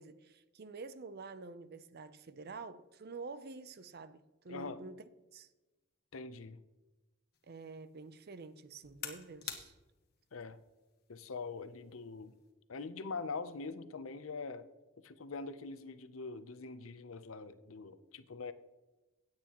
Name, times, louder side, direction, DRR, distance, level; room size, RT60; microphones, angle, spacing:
voice 1, 0.0-5.0 5.3-5.5 7.5-9.7, right 4 dB, 50° right, 0.6 m, -48 dB
voice 2, 4.5-4.8 6.1-6.6 10.3-10.6 11.1-12.3 12.7-14.7 15.0-18.5, left 4 dB, 80° left, 0.7 m, -43 dB
sound 1, 7.3-12.5, left 8 dB, 50° left, 1.4 m, -51 dB
16.5 x 8.8 x 3.0 m
head